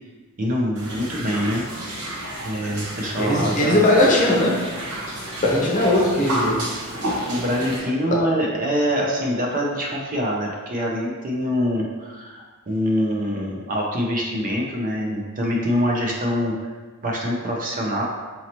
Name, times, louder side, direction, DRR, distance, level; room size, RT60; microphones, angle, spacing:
voice 1, 0.4-1.6 2.4-3.8 7.0-16.5 17.0-18.0, equal, 40° right, -2 dB, 0.5 m, -24 dB
sound 1, 0.8-7.8, right 1 dB, 90° right, 0.9 m, -31 dB
voice 2, 3.2-4.6 5.4-6.6, left 1 dB, 35° left, -3 dB, 0.7 m, -19 dB
4.1 x 2.8 x 2.9 m, 1.4 s
head